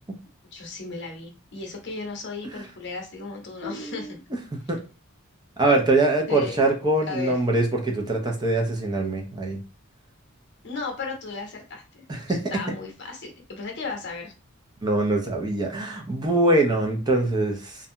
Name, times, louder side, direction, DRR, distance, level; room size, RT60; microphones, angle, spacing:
voice 1, 0.5-4.2 6.3-6.6 7.1-7.4 10.6-14.3, left 4 dB, 60° left, 2 dB, 0.8 m, -35 dB
voice 2, 3.6-4.1 4.7-4.8 5.6-9.6 12.1-12.4 14.8-17.8, right 2 dB, 20° right, 1 dB, 0.4 m, -23 dB
2.5 x 2.2 x 2.7 m, 0.32 s
head